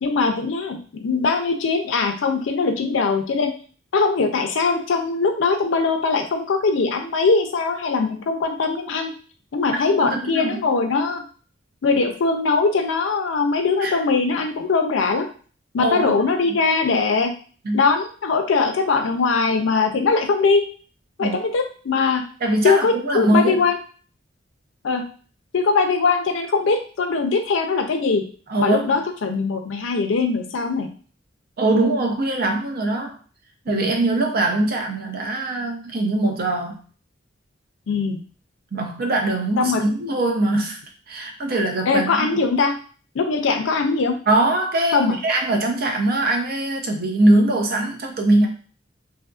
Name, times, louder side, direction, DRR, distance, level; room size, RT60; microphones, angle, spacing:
voice 1, 0.0-3.5 3.9-9.1 9.5-11.2 11.8-15.3 15.7-17.3 17.7-20.6 21.2-22.2 22.6-23.8 24.8-25.0 25.5-28.2 28.6-30.9 33.7-33.9 37.9-38.2 39.6-39.8 41.9-42.7 43.1-44.2 44.9-45.2, left 4 dB, 75° left, 5 dB, 0.4 m, -21 dB
voice 2, 9.9-10.6 13.8-14.0 15.8-16.2 16.5-16.6 17.6-17.8 21.2-21.4 22.4-23.6 28.5-28.9 31.6-33.1 33.7-36.8 38.7-40.8 41.1-42.3 44.3-48.5, right 2 dB, 50° right, 2 dB, 0.6 m, -22 dB
2.7 x 2.5 x 2.4 m, 0.41 s
head